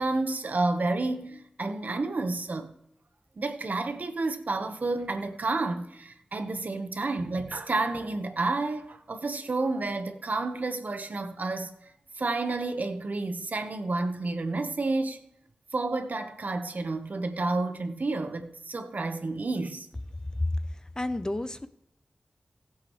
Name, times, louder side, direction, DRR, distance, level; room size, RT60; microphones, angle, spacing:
voice 1, 0.0-2.7 3.4-11.7 12.2-15.2 15.7-19.9, right 3 dB, 65° right, 1.1 m, -30 dB
voice 2, 21.0-21.7, left 2 dB, 25° left, 0.6 m, -29 dB
19.5 x 7.8 x 3.2 m
wide cardioid pair, 75°, 3 cm